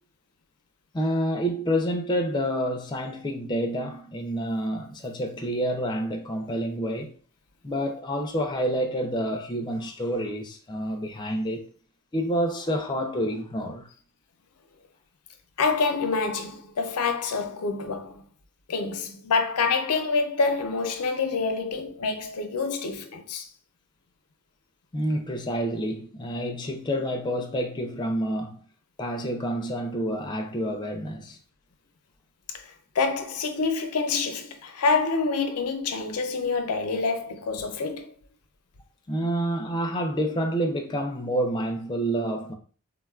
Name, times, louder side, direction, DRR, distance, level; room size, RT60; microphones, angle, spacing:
voice 1, 0.9-7.1 7.6-11.7 12.1-13.9 24.9-28.6 29.0-31.4 39.1-42.5, equal, 20° left, 0.3 m, -28 dB
voice 2, 15.6-18.3 18.7-23.5 32.6-38.1, left 4 dB, 90° left, 0.5 m, -27 dB
3.6 x 2.2 x 2.3 m
head